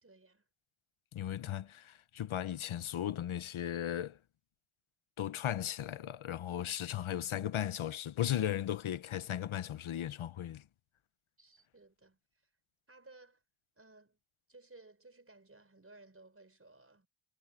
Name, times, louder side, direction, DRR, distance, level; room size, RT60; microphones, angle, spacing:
voice 1, 0.0-0.4 11.4-12.2 12.9-13.4 13.8-14.2 14.5-17.1, right 2 dB, 30° right, 5.1 m, -58 dB
voice 2, 1.1-4.2 5.2-10.6, left 11 dB, 85° left, 1.0 m, -36 dB
cardioid pair, 80°, 48 cm